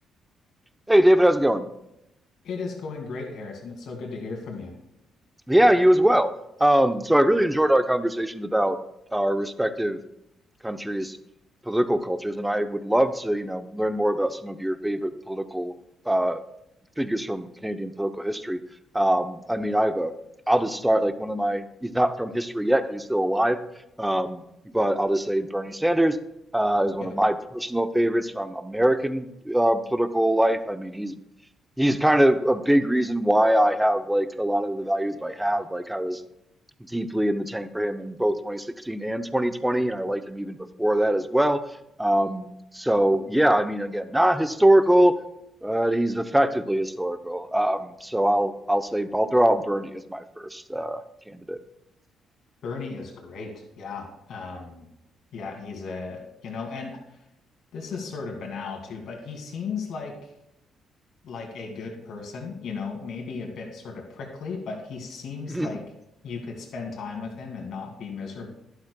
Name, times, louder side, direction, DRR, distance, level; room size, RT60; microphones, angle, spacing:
voice 1, 0.9-1.7 5.5-6.3 6.6-8.8 9.1-10.0 10.6-11.2 11.7-15.7 16.1-16.4 17.0-18.6 18.9-20.1 20.5-23.6 24.0-24.4 24.7-26.2 26.5-31.2 31.8-36.2 36.9-41.6 42.0-42.5 42.7-45.2 45.6-51.0 51.3-51.6 65.5-65.7, right 1 dB, 5° right, 10 dB, 0.7 m, -23 dB
voice 2, 2.4-4.7 52.6-54.9 55.3-57.2 57.7-60.1 61.2-65.8 66.2-68.5, left 4 dB, 70° left, 1 dB, 2.3 m, -35 dB
11.5 x 11.5 x 2.3 m, 0.84 s
cardioid pair, 90°, 0 cm